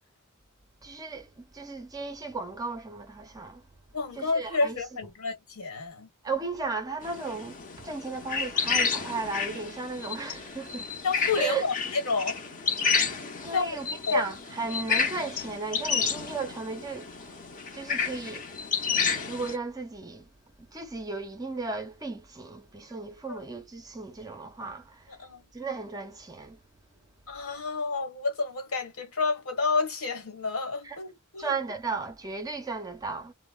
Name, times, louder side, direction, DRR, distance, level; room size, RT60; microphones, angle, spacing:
voice 1, 0.8-3.6 4.2-4.8 6.2-11.0 11.4-11.6 13.4-17.4 17.7-18.5 19.3-20.3 20.7-25.1 25.5-26.6 30.8-31.0 31.4-33.3, right 4 dB, 15° right, 0.5 m, -35 dB
voice 2, 3.9-6.1 11.0-12.4 13.5-13.8 14.1-14.2 23.3-23.4 25.2-25.4 27.3-31.5, left 4 dB, 65° left, 1.2 m, -29 dB
sound 1, 7.0-19.6, left 5 dB, 35° left, 0.6 m, -31 dB
2.9 x 2.0 x 2.3 m
head